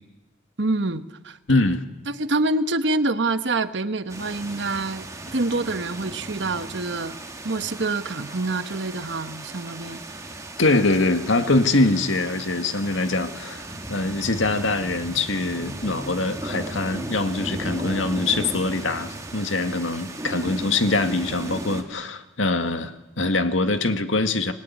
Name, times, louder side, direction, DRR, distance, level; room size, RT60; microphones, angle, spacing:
voice 1, 0.6-1.6 2.1-5.1 5.3-7.2 7.4-10.0, right 2 dB, 60° right, 10 dB, 1.2 m, -26 dB
voice 2, 1.5-1.8 10.6-24.5, left 2 dB, 80° left, 7 dB, 2.0 m, -23 dB
sound 1, 4.1-21.8, right 1 dB, 15° right, 2.5 m, -36 dB
26.0 x 21.0 x 9.7 m, 1.1 s
head